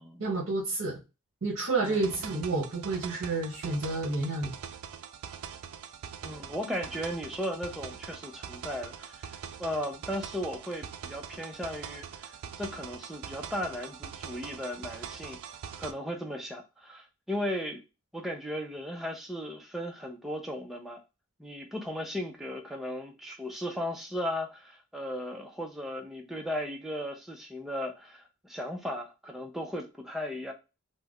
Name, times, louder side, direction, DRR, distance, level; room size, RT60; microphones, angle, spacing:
voice 1, 0.2-1.0 1.4-4.5, right 3 dB, 60° right, 0.7 m, -30 dB
sound 1, 1.8-15.9, right 7 dB, 90° right, 0.4 m, -43 dB
voice 2, 6.2-15.4 15.7-17.8 18.1-21.0 21.4-30.5, equal, ahead, 0.4 m, -36 dB
2.4 x 2.1 x 3.4 m
head